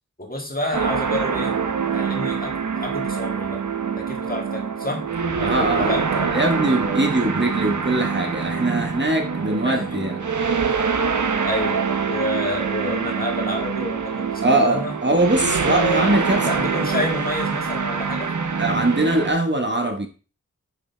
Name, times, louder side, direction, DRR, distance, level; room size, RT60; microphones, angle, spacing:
voice 1, 0.2-1.6 1.9-3.6 4.0-5.1 5.4-6.4 9.6-10.0 10.7-10.8 11.4-14.9 15.6-18.3, left 1 dB, 30° left, 1 dB, 1.9 m, -29 dB
sound 1, 0.7-19.3, right 5 dB, 70° right, 0.9 m, -25 dB
voice 2, 5.4-6.0 6.3-10.2 14.4-16.4 18.6-20.1, right 2 dB, 35° right, 3 dB, 1.4 m, -21 dB
6.5 x 5.9 x 3.4 m, 0.36 s
wide cardioid pair, 45°, 31 cm